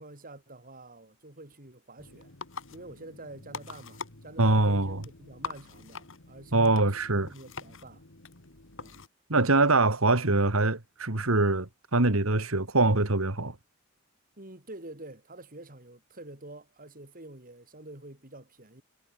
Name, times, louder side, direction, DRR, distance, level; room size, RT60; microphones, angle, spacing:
voice 1, 0.0-2.3 2.7-8.0 8.8-9.0 14.4-18.8, right 2 dB, 40° right, 5.3 m, -47 dB
sound 1, 2.0-9.1, left 4 dB, 65° left, 2.5 m, -44 dB
voice 2, 4.4-5.0 6.5-7.3 9.3-13.5, right 2 dB, 75° right, 2.3 m, -24 dB
head